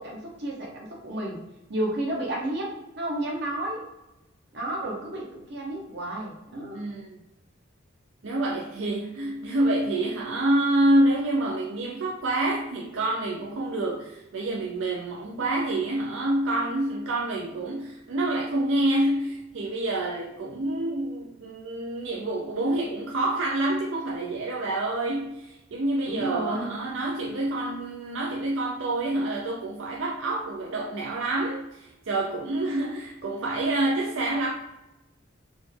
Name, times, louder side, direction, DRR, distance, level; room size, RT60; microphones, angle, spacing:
voice 1, 0.0-1.4 1.7-3.8 4.5-6.8 26.1-26.7, right 1 dB, 60° right, -2 dB, 1.0 m, -31 dB
voice 2, 6.7-7.2 8.2-34.5, right 1 dB, 80° right, -2 dB, 0.5 m, -27 dB
4.0 x 2.3 x 3.3 m, 0.96 s
head